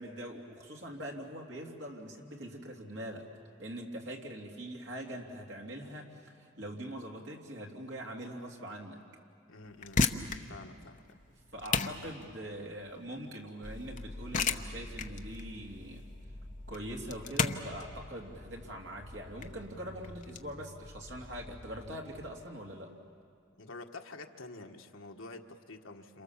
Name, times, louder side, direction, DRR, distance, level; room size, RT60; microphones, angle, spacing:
voice 1, 0.0-3.3 3.6-9.1 11.5-16.1 16.7-22.9, right 1 dB, 60° right, 0 dB, 3.1 m, -43 dB
voice 2, 9.5-10.1 10.5-11.2 23.5-26.2, left 3 dB, 70° left, 3 dB, 1.5 m, -48 dB
sound 1, 9.6-20.4, left 5 dB, 40° left, 0.9 m, -35 dB
sound 2, 13.6-22.1, left 1 dB, ahead, 6.8 m, -48 dB
29.0 x 27.5 x 7.3 m, 2.3 s
head